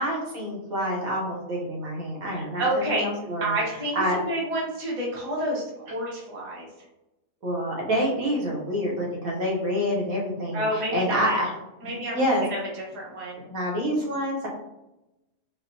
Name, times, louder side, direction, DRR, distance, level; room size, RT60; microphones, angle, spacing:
voice 1, 0.0-3.6 4.0-4.2 7.4-11.5 11.8-12.5 13.5-14.5, equal, 75° right, -2 dB, 1.3 m, -27 dB
voice 2, 2.4-3.1 3.4-6.7 10.5-11.5 11.8-12.2 12.5-13.5, right 1 dB, 30° right, -4 dB, 0.7 m, -29 dB
4.1 x 2.1 x 2.5 m, 0.94 s
omnidirectional pair, 1.5 m